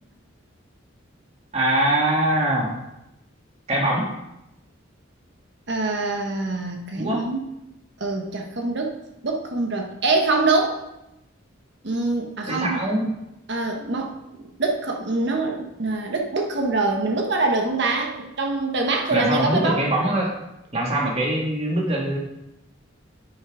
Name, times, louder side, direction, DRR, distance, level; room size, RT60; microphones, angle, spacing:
voice 1, 1.5-2.8 3.7-4.1 7.0-7.3 12.5-13.1 19.1-20.4 20.7-22.2, right 1 dB, 30° right, -2 dB, 2.0 m, -22 dB
voice 2, 5.7-7.5 8.0-10.8 11.8-12.9 13.5-19.9, right 3 dB, 60° right, 2 dB, 1.2 m, -24 dB
9.4 x 6.3 x 4.9 m, 0.90 s
head